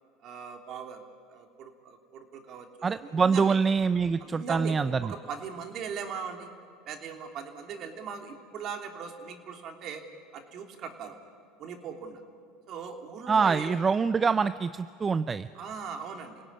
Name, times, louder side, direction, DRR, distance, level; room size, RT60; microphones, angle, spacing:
voice 1, 0.2-1.0 1.3-3.6 4.2-6.5 6.8-10.0 10.3-11.2 11.6-12.2 12.7-13.8 15.5-16.4, right 6 dB, 50° right, 4 dB, 3.2 m, -40 dB
voice 2, 2.8-5.1 13.3-15.5, right 5 dB, 25° right, 13 dB, 0.6 m, -25 dB
28.0 x 17.5 x 9.8 m, 2.2 s
supercardioid pair, 100°, 0 cm